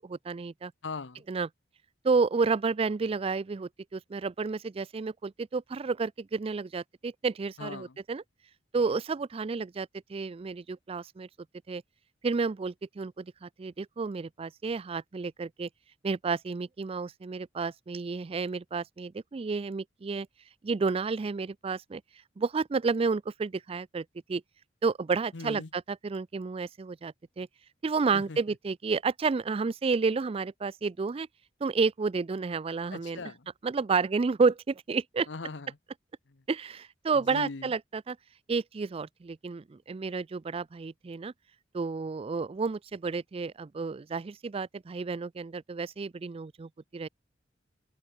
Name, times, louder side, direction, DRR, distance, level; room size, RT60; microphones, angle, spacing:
voice 1, 0.0-0.7 1.3-1.5 2.0-8.2 8.7-11.3 11.7-11.8 12.2-15.7 16.0-20.3 20.6-22.0 22.4-24.4 24.8-27.5 27.8-31.3 31.6-33.2 33.6-35.3 36.5-38.2 38.5-41.3 41.7-47.1, right 4 dB, 30° right, 0.4 m, -31 dB
voice 2, 0.8-1.2 7.6-7.9 25.3-25.7 28.1-28.4 32.9-33.5 35.3-35.7 37.1-37.7, left 3 dB, 85° left, 0.9 m, -39 dB
open air
head